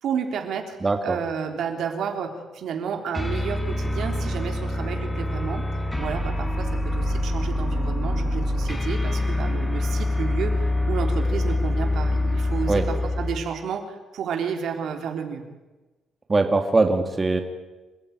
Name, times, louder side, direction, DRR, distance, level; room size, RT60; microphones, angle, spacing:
voice 1, 0.0-0.8 1.0-5.7 6.0-15.5, right 7 dB, 70° right, 4 dB, 3.4 m, -31 dB
voice 2, 0.8-1.2 12.7-12.8 16.3-17.4, right 3 dB, 25° right, 5 dB, 2.2 m, -21 dB
sound 1, 3.1-13.5, left 1 dB, 15° left, 4.7 m, -25 dB
27.5 x 15.0 x 9.4 m, 1.2 s
cardioid pair, 110°, 0 cm